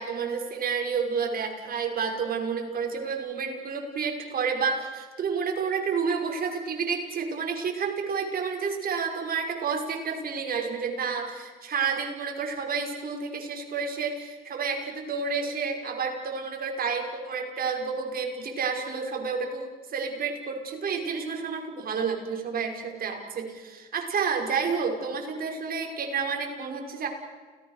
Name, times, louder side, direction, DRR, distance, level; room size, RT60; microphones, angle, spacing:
voice 1, 0.0-27.1, right 5 dB, 50° right, 2 dB, 5.6 m, -30 dB
29.0 x 19.0 x 6.6 m, 1.5 s
supercardioid pair, 80°, 20 cm